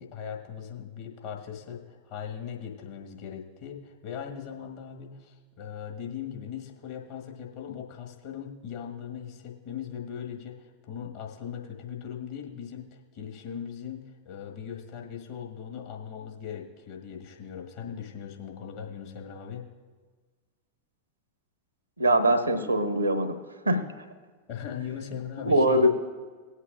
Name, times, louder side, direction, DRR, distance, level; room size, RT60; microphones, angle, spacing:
voice 1, 0.0-19.7 24.5-25.9, left 8 dB, 50° left, 1 dB, 1.5 m, -39 dB
voice 2, 22.0-23.4 23.7-23.8 25.4-25.9, right 1 dB, 80° right, 9 dB, 0.9 m, -22 dB
19.0 x 8.3 x 2.5 m, 1.4 s
figure-of-eight pair, 90°, 0 cm